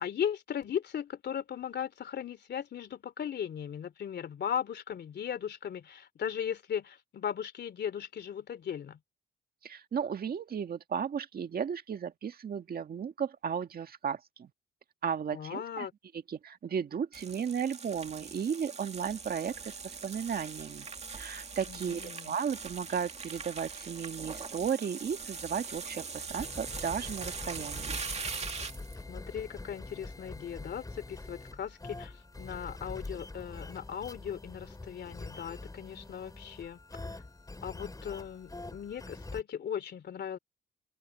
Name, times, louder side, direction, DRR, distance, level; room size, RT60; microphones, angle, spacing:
voice 1, 0.0-9.0 15.3-15.9 21.7-22.3 29.1-36.8 37.1-37.2 37.6-40.4, left 8 dB, 55° left, 3.0 m, -37 dB
voice 2, 9.6-14.5 15.0-15.9 16.3-20.9 21.2-28.0, right 7 dB, 50° right, 1.9 m, -35 dB
sound 1, 17.1-29.0, right 5 dB, 35° right, 2.2 m, -41 dB
sound 2, 26.4-39.4, left 2 dB, 20° left, 3.8 m, -45 dB
open air
cardioid pair, 90°, 20 cm